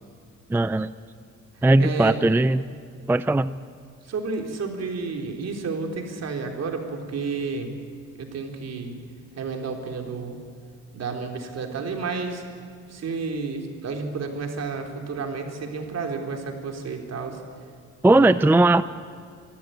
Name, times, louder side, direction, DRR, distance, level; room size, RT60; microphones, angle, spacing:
voice 1, 0.5-0.9 1.6-2.6 3.1-3.5 18.0-18.8, right 2 dB, 5° right, 14 dB, 0.4 m, -18 dB
voice 2, 1.8-2.2 4.1-7.7 8.2-9.0 9.4-10.4 10.9-12.4 12.9-17.4 18.1-18.4, right 4 dB, 55° right, 3 dB, 3.6 m, -31 dB
24.5 x 14.5 x 9.1 m, 2.3 s
cardioid pair, 90°, 30 cm